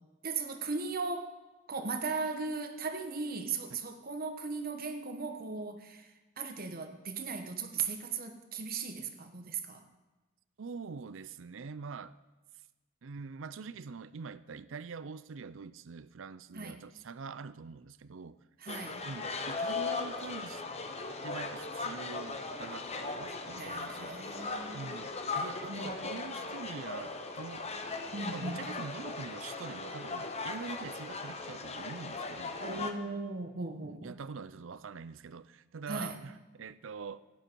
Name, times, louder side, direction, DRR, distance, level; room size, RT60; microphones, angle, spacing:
voice 1, 0.2-1.3 1.7-6.1 6.4-9.8 16.5-16.8 18.6-19.0 23.6-24.9 25.7-26.0 28.1-28.7 32.6-34.2 35.9-36.2, right 4 dB, 50° right, 6 dB, 1.2 m, -37 dB
voice 2, 10.6-12.2 13.0-18.4 19.0-20.6 21.2-24.1 24.7-27.7 28.3-32.9 33.8-37.2, right 5 dB, 80° right, 16 dB, 0.5 m, -44 dB
sound 1, 18.7-32.9, left 3 dB, 35° left, 1.0 m, -38 dB
16.5 x 10.5 x 4.6 m, 1.1 s
head